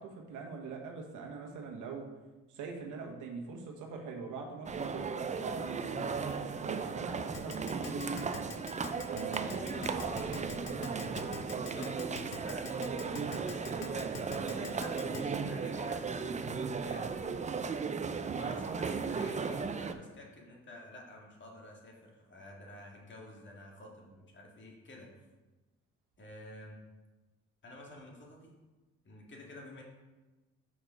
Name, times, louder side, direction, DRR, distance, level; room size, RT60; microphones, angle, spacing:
voice 1, 0.0-2.1 2.5-6.3 6.6-8.3 9.0-11.1 14.5-14.7 18.2-18.6, right 4 dB, 90° right, 1 dB, 1.2 m, -43 dB
sound 1, 4.7-19.9, right 5 dB, 25° right, 0.5 m, -36 dB
Keyboard (musical), 7.3-15.2, left 7 dB, 55° left, 0.8 m, -44 dB
voice 2, 11.5-12.8 13.2-16.0 16.4-17.2 18.3-25.1 26.2-26.8 27.6-28.6 29.0-29.8, left 1 dB, 40° left, -1 dB, 1.9 m, -51 dB
6.3 x 4.7 x 5.2 m, 1.2 s
cardioid pair, 90°, 30 cm